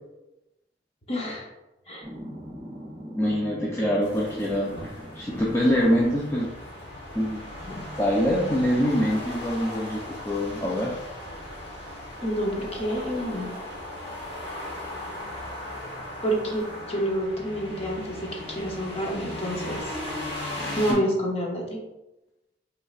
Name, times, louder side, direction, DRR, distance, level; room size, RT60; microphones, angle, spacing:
voice 1, 1.1-1.5 1.9-2.1 12.2-13.5 16.2-20.0 20.7-21.8, equal, 30° left, -1 dB, 0.9 m, -28 dB
sound 1, 2.0-6.5 7.8-7.9 8.3-10.4, equal, 25° right, 0.6 m, -43 dB
voice 2, 3.1-6.5 7.1-11.0 20.6-21.0, equal, 15° left, -4 dB, 0.4 m, -25 dB
sound 2, 4.0-20.9, left 1 dB, 65° left, 1.4 m, -37 dB
5.5 x 3.2 x 2.4 m, 0.97 s
head